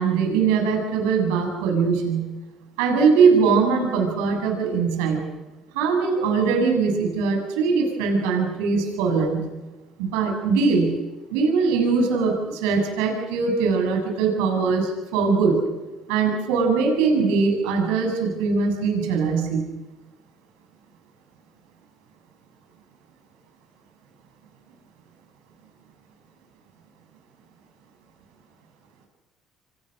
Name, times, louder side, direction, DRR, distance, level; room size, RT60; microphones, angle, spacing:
voice 1, 0.0-2.3 2.8-5.2 5.7-9.5 10.0-11.0 11.3-15.6 16.1-19.6, right 5 dB, 90° right, 2 dB, 7.4 m, -21 dB
29.5 x 25.5 x 6.6 m, 1.1 s
supercardioid pair, 90°, 0 cm